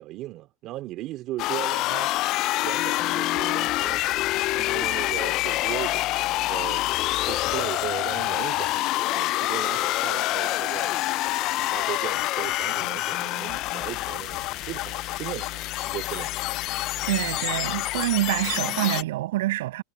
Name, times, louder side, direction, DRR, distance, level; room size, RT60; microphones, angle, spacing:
voice 1, 0.0-2.1 2.6-4.1 4.5-6.8 7.2-11.0 11.7-16.3, right 16 dB, 45° right, 2.8 m, -37 dB
sound 1, 1.4-19.0, left 17 dB, 50° left, 0.4 m, -27 dB
voice 2, 17.1-19.8, right 16 dB, 80° right, 7.8 m, -26 dB
supercardioid pair, 130°, 0 cm